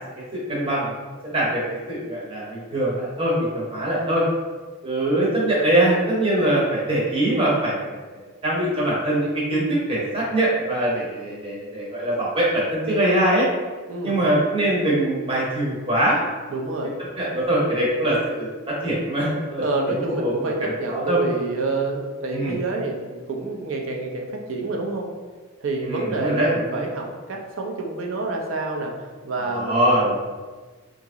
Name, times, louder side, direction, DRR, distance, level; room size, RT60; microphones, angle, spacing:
voice 1, 0.3-0.9 1.2-1.6 1.9-4.2 4.8-7.8 8.4-13.5 14.0-16.2 16.6-16.7 17.2-19.6 20.0-20.3 20.6-21.2 22.3-22.6 25.8-26.8 29.4-30.2, right 1 dB, 25° right, -6 dB, 0.8 m, -22 dB
voice 2, 16.5-17.0 19.3-25.1 25.6-28.9 29.2-30.0, right 2 dB, 75° right, 1 dB, 0.6 m, -28 dB
2.9 x 2.6 x 3.6 m, 1.4 s
head